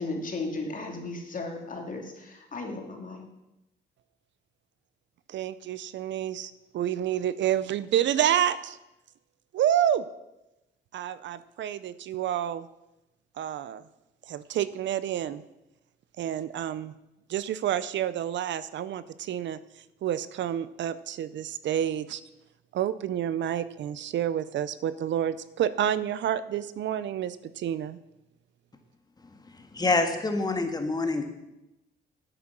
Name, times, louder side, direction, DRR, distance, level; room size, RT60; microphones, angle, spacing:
voice 1, 0.0-3.2, left 3 dB, 40° left, 2 dB, 2.6 m, -35 dB
voice 2, 5.3-8.8 9.5-10.0 10.9-12.7 13.4-13.8 14.3-15.4 16.2-16.9 17.3-19.6 20.0-22.2 22.7-28.0, right 10 dB, 65° right, 15 dB, 0.6 m, -29 dB
voice 3, 29.4-31.2, left 3 dB, 20° left, 5 dB, 1.6 m, -27 dB
10.0 x 8.4 x 6.0 m, 0.95 s
cardioid pair, 90°, 20 cm